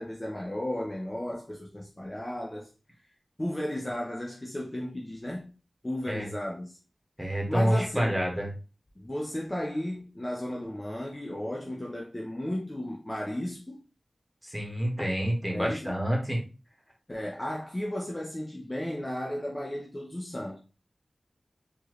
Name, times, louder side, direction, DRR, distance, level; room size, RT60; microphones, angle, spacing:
voice 1, 0.0-2.7 3.4-5.5 5.8-6.8 7.2-8.2 9.0-13.8 15.5-15.9 17.1-20.6, left 1 dB, 25° left, 0.8 m, -34 dB
voice 2, 7.2-8.5 14.4-16.4, equal, 5° right, 1.7 m, -28 dB
4.4 x 3.1 x 3.1 m
wide cardioid pair, 70°, 0 cm